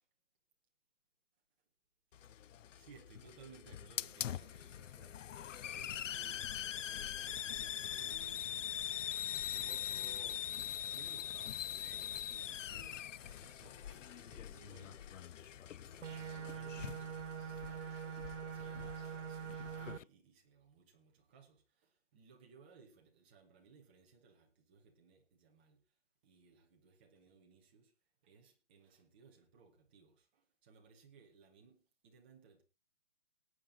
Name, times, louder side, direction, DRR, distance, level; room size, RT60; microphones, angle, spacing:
Hiss, 2.1-20.0, left 10 dB, 85° left, 0.5 m, -43 dB
voice 1, 2.7-5.4 5.7-8.5 9.0-15.1 15.9-18.2 18.5-25.8 26.2-27.9 28.2-32.6, right 4 dB, 10° right, 0.8 m, -62 dB
sound 1, 13.2-19.3, left 4 dB, 40° left, 3.6 m, -64 dB
sound 2, 16.0-20.0, right 7 dB, 70° right, 0.9 m, -44 dB
19.0 x 8.7 x 3.8 m
hypercardioid pair, 170°, 37 cm